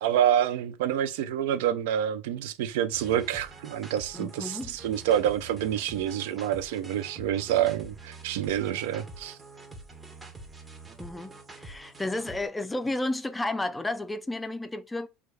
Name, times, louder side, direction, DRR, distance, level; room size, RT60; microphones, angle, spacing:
voice 1, 0.0-9.4, right 10 dB, 90° right, 0.4 m, -27 dB
sound 1, 2.9-12.5, right 2 dB, 15° right, 0.7 m, -46 dB
voice 2, 4.1-4.8 11.0-11.3 11.6-15.1, left 2 dB, 10° left, 0.3 m, -32 dB
3.3 x 2.3 x 3.2 m
supercardioid pair, 120°, 0 cm